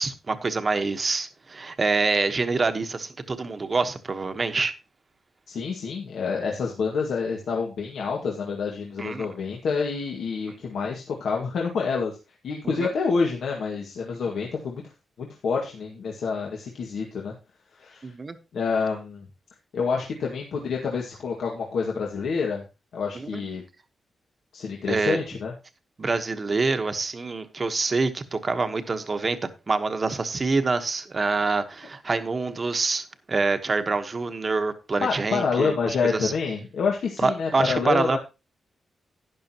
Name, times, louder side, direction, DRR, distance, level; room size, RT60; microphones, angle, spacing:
voice 1, 0.0-4.7 9.0-9.3 12.8-12.9 18.0-18.4 23.1-23.4 24.9-25.2 26.0-36.3 37.2-38.2, right 3 dB, 35° right, 1.2 m, -26 dB
voice 2, 5.5-12.2 12.4-14.8 15.2-17.3 17.8-18.1 18.5-19.2 19.7-22.6 22.9-23.6 24.5-25.5 35.0-38.2, left 5 dB, 80° left, 1.9 m, -27 dB
12.0 x 10.5 x 3.0 m
cardioid pair, 110°, 0 cm